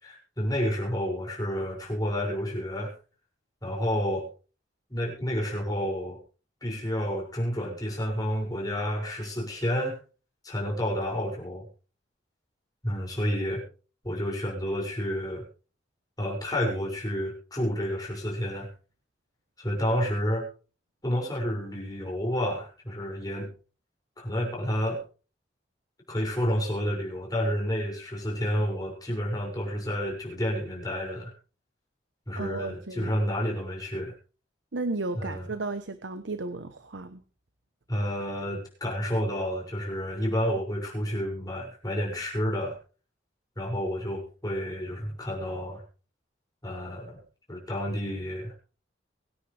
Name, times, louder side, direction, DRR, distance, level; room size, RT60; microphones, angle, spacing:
voice 1, 0.0-2.9 3.6-4.3 4.9-6.2 6.6-10.0 10.4-11.7 12.8-13.6 14.0-15.4 16.2-18.7 19.6-20.5 21.0-23.5 24.2-25.0 26.1-31.3 32.3-34.1 35.1-35.5 37.9-42.8 43.6-45.8 46.6-47.2 47.5-48.5, equal, 20° left, -2 dB, 6.3 m, -30 dB
voice 2, 32.4-33.2 34.7-37.2, right 3 dB, 80° right, 11 dB, 0.9 m, -34 dB
24.0 x 9.9 x 3.4 m, 0.37 s
head